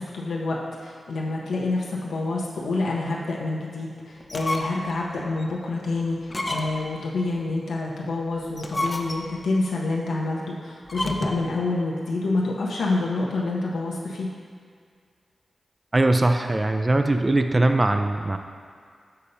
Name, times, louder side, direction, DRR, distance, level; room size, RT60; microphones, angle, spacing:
voice 1, 0.0-14.3, left 2 dB, 90° left, -3 dB, 0.6 m, -27 dB
sound 1, 4.2-4.9 5.4-5.5 6.2-7.0 8.4-9.4 10.8-11.5, left 1 dB, 25° left, 0.5 m, -30 dB
voice 2, 15.9-18.4, right 2 dB, 30° right, 6 dB, 0.3 m, -21 dB
6.6 x 2.8 x 5.2 m, 2.1 s
cardioid pair, 65°, 0 cm